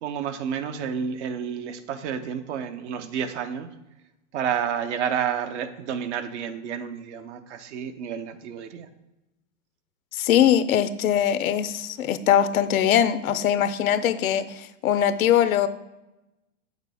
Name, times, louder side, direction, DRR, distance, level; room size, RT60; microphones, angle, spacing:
voice 1, 0.0-3.7 4.3-8.9, right 8 dB, 60° right, 10 dB, 0.8 m, -30 dB
voice 2, 10.1-15.7, left 10 dB, 85° left, 13 dB, 0.7 m, -21 dB
8.3 x 6.6 x 3.5 m, 0.96 s
hypercardioid pair, 145°, 41 cm